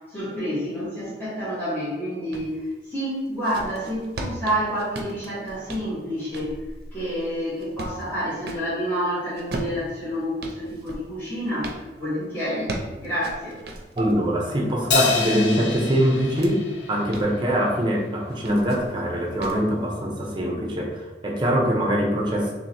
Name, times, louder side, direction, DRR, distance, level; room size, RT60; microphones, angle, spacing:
voice 1, 0.1-6.6 6.9-12.7 13.0-13.6, equal, 10° left, -11 dB, 1.5 m, -29 dB
sound 1, 2.3-2.5 3.1-8.7 9.3-11.8 12.4-14.2 14.7-16.5 16.9-17.4 18.3-18.9 19.4-19.7, right 1 dB, 60° right, 0.6 m, -37 dB
voice 2, 14.0-16.6 16.9-22.5, equal, 25° right, 0 dB, 0.7 m, -23 dB
Crash cymbal, 14.9-17.6, left 4 dB, 70° left, 0.6 m, -26 dB
3.1 x 3.0 x 4.2 m, 1.2 s
head